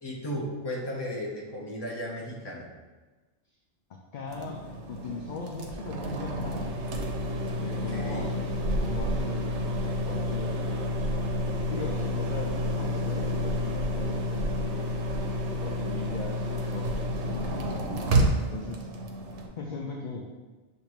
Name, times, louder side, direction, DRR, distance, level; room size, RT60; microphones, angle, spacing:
voice 1, 0.0-2.7 7.7-8.4, equal, 25° left, -3 dB, 0.8 m, -35 dB
voice 2, 4.1-4.6 4.9-6.8 7.3-8.5 8.7-9.6 9.8-10.6 11.6-15.0 15.6-18.9 19.6-20.3, left 4 dB, 60° left, 0 dB, 0.5 m, -39 dB
sound 1, 4.3-19.5, equal, 90° right, 0.9 m, -30 dB
6.7 x 2.6 x 3.0 m, 1.2 s
omnidirectional pair, 1.1 m